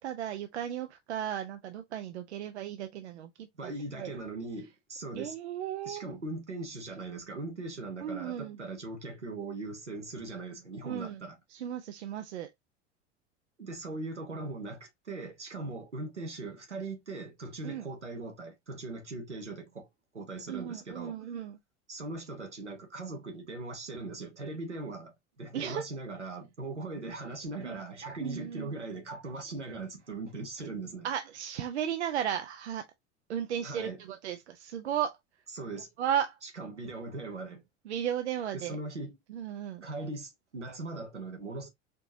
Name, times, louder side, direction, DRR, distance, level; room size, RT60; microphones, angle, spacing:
voice 1, 0.0-4.1 5.2-6.0 8.0-8.6 10.8-11.2 11.5-12.5 17.6-17.9 20.5-21.6 25.5-25.8 27.0-27.1 27.6-27.8 28.2-28.7 31.0-32.9 33.3-35.2 36.0-36.4 37.8-38.8 39.3-39.8, right 9 dB, 75° right, 0.6 m, -35 dB
voice 2, 3.6-5.3 5.8-11.4 13.6-19.9 20.1-21.2 21.9-31.1 33.6-34.0 35.5-35.9 36.4-37.7 38.5-39.1 39.8-41.7, right 2 dB, 90° right, 1.1 m, -40 dB
4.4 x 2.9 x 2.6 m
figure-of-eight pair, 75°, 34 cm